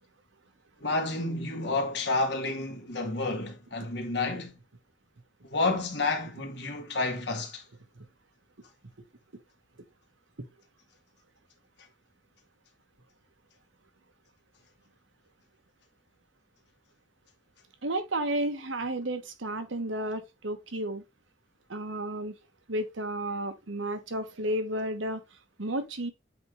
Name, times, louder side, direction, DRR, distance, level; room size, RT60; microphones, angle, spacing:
voice 1, 0.8-4.6 5.4-7.6, left 3 dB, 60° left, 1.8 m, -30 dB
voice 2, 17.8-21.0 21.7-22.3 22.7-25.2 25.6-26.1, right 1 dB, 85° right, 1.2 m, -32 dB
7.8 x 3.8 x 3.2 m
head